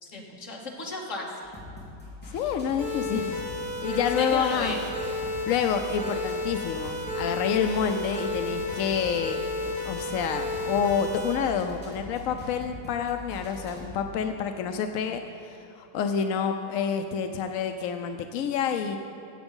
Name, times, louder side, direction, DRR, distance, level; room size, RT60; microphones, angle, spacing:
voice 1, 0.0-1.5 3.9-4.8, left 2 dB, 45° left, -1 dB, 1.8 m, -35 dB
sound 1, 1.4-14.0, left 2 dB, 5° left, 3.1 m, -43 dB
voice 2, 2.3-3.4 3.8-4.8 5.5-9.4 9.8-19.0, left 7 dB, 70° left, 6 dB, 0.8 m, -28 dB
sound 2, 2.8-11.3, left 2 dB, 65° right, 3.7 m, -32 dB
15.0 x 7.9 x 5.4 m, 2.7 s
omnidirectional pair, 1.9 m